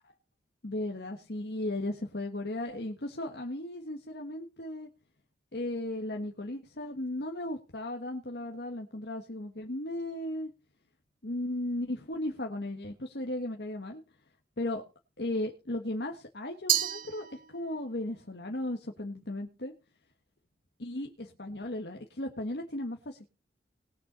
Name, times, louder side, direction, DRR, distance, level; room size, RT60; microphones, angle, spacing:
voice 1, 0.6-4.9 5.5-10.5 11.2-14.0 14.6-14.8 15.2-19.7 20.8-23.3, left 1 dB, 70° left, 3 dB, 1.5 m, -36 dB
Glass, 16.7-17.9, right 11 dB, 50° right, 0.8 m, -31 dB
19.5 x 6.6 x 4.3 m, 0.31 s
head